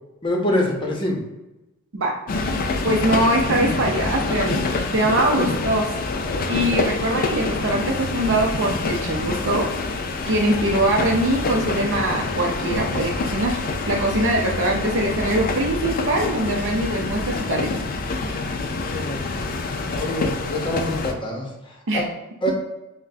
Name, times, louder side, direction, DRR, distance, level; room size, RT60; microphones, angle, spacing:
voice 1, 0.2-1.2 5.4-5.5 18.9-19.2 19.9-21.4 21.9-22.0 22.4-22.5, left 1 dB, 25° left, -1 dB, 0.8 m, -24 dB
sound 1, 2.3-21.1, left 3 dB, 40° left, 0.4 m, -26 dB
voice 2, 2.8-4.6 4.9-5.9 6.5-9.7 10.3-17.7 21.9-22.0, right 1 dB, 60° right, 0 dB, 0.6 m, -22 dB
5.9 x 2.1 x 2.7 m, 1.0 s
head